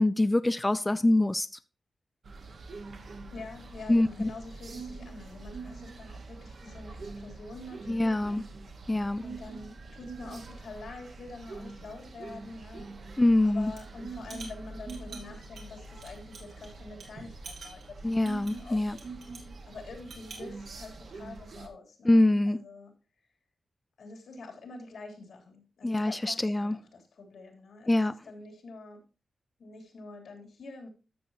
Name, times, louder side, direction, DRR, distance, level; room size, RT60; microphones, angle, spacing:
voice 1, 0.0-1.5 3.9-4.3 7.9-8.4 8.9-9.2 13.2-13.7 18.0-19.0 22.1-22.6 25.8-26.8 27.9-28.1, left 1 dB, 15° left, 0.3 m, -24 dB
sound 1, 2.2-21.7, right 3 dB, 60° right, 1.3 m, -45 dB
voice 2, 3.3-8.4 9.2-12.9 13.4-19.0 19.3-22.9 24.0-29.0 29.6-30.9, left 3 dB, 85° left, 3.2 m, -46 dB
sound 2, 13.6-13.9 14.2-16.7 17.0-17.1 17.4-19.5 19.9-20.5, right 4 dB, 75° right, 2.7 m, -48 dB
13.0 x 6.8 x 2.8 m
wide cardioid pair, 140°, 0 cm